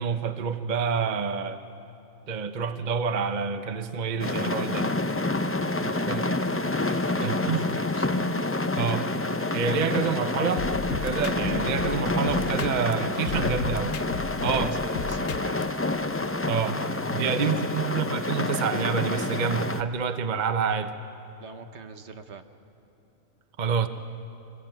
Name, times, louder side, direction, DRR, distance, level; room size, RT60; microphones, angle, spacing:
voice 1, 0.0-1.6 2.3-4.9 5.8-6.4 7.2-7.8 8.8-9.1 9.5-14.0 14.4-14.8 16.4-16.8 17.1-21.0 23.6-23.9, right 6 dB, 40° right, 9 dB, 0.8 m, -28 dB
sound 1, 4.2-19.8, left 2 dB, 25° left, 0.3 m, -28 dB
voice 2, 6.9-8.3 14.3-14.7 15.1-15.7 17.0-17.7 21.4-22.4, right 5 dB, 60° right, 9 dB, 1.2 m, -44 dB
sound 2, 10.6-12.9 13.3-15.6, left 6 dB, 75° left, 1.3 m, -34 dB
23.5 x 20.5 x 9.1 m, 3.0 s
omnidirectional pair, 1.4 m